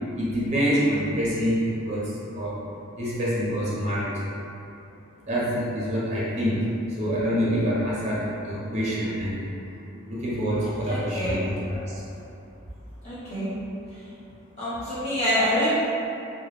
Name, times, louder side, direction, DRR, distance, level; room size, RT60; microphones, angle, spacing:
voice 1, 0.1-2.6 3.0-4.1 5.3-6.7 7.0-9.5 10.1-11.8, equal, 35° right, -8 dB, 0.6 m, -26 dB
voice 2, 10.9-11.5 13.0-13.5 14.6-15.7, equal, 35° left, -13 dB, 1.1 m, -26 dB
2.2 x 2.1 x 3.1 m, 2.7 s
head